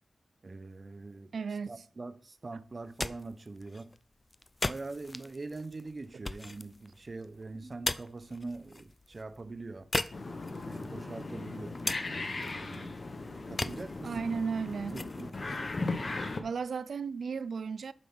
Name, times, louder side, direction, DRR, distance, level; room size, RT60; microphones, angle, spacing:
voice 1, 0.4-3.9 4.6-9.9 10.6-13.0 13.5-14.5 14.9-15.3, right 3 dB, 40° right, 0.7 m, -43 dB
voice 2, 1.3-1.7 14.0-15.0 16.4-17.9, right 5 dB, 85° right, 0.4 m, -34 dB
sound 1, 2.7-16.7, left 2 dB, 25° left, 0.4 m, -41 dB
sound 2, 10.1-16.4, left 3 dB, 45° left, 0.9 m, -38 dB
7.6 x 5.3 x 5.5 m
wide cardioid pair, 105°, 0 cm